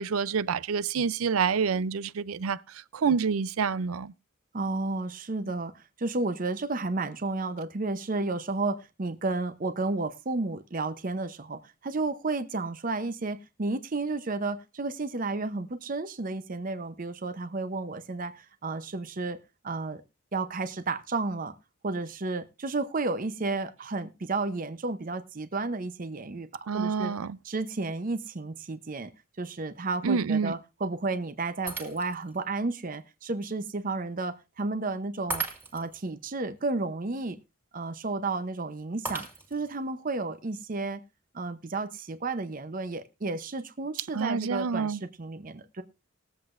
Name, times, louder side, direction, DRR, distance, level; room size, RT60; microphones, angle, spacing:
voice 1, 0.0-4.1 26.7-27.4 30.0-30.5 44.1-45.0, right 6 dB, 85° right, 0.5 m, -28 dB
voice 2, 4.5-19.4 19.6-20.0 20.3-21.5 21.8-26.5 26.7-27.1 27.4-29.1 29.4-35.4 35.7-37.4 37.7-41.0 41.3-45.8, right 3 dB, 40° right, 0.7 m, -32 dB
Shatter, 31.7-32.4 32.9-33.0 35.3-36.0 39.0-39.8, right 3 dB, 10° right, 2.1 m, -36 dB
20.5 x 7.8 x 2.5 m
head